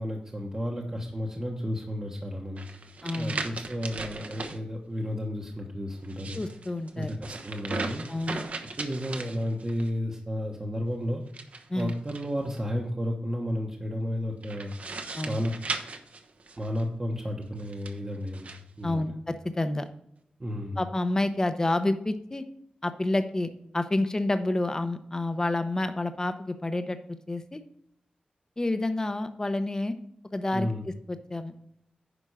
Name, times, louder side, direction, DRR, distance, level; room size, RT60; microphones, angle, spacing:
voice 1, 0.0-2.6 3.2-6.4 7.0-8.1 8.8-11.2 11.7-14.7 15.3-15.5 16.6-18.5 18.8-19.1 20.4-20.8 30.5-30.9, equal, 25° right, 0 dB, 1.1 m, -32 dB
sound 1, 2.6-4.6 6.0-9.9 11.3-12.6 14.4-16.8 17.6-18.6, right 3 dB, 55° right, 1.0 m, -38 dB
voice 2, 3.0-3.4 6.3-7.1 8.1-8.4 11.7-11.9 15.2-15.4 18.8-19.9 20.8-22.4 22.8-27.0 27.3-27.6 28.6-29.9 30.3-31.5, left 2 dB, 20° left, 9 dB, 0.8 m, -29 dB
10.0 x 5.3 x 4.8 m, 0.73 s
wide cardioid pair, 120°, 3 cm